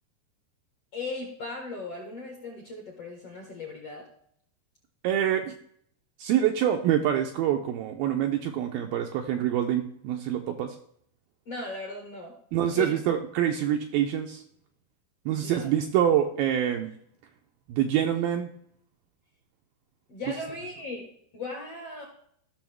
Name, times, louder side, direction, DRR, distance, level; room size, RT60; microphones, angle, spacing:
voice 1, 0.9-4.0 11.5-12.3 12.7-13.0 15.4-15.7 20.1-21.1 21.3-22.0, left 3 dB, 60° left, 0 dB, 1.6 m, -37 dB
voice 2, 5.0-5.5 6.2-10.8 12.5-14.4 15.3-16.9 17.7-18.5, right 10 dB, 85° right, 4 dB, 2.2 m, -26 dB
14.5 x 6.3 x 3.4 m, 0.66 s
omnidirectional pair, 4.9 m